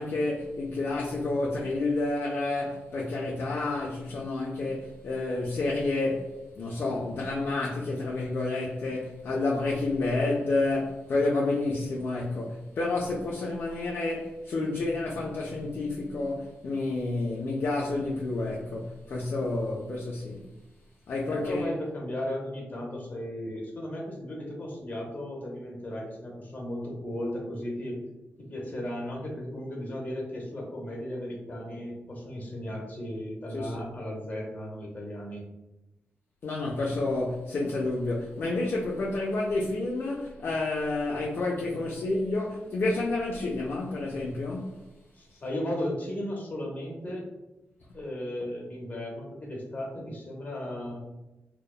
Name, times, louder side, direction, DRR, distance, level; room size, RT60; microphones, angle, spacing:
voice 1, 0.0-20.4 21.1-21.7 33.5-33.9 36.4-44.8, left 2 dB, 55° left, 0.4 m, -29 dB
voice 2, 21.3-28.0 28.5-35.4 45.1-47.2 47.9-51.0, left 1 dB, 40° left, 0.8 m, -35 dB
2.8 x 2.0 x 2.3 m
wide cardioid pair, 105°, 4 cm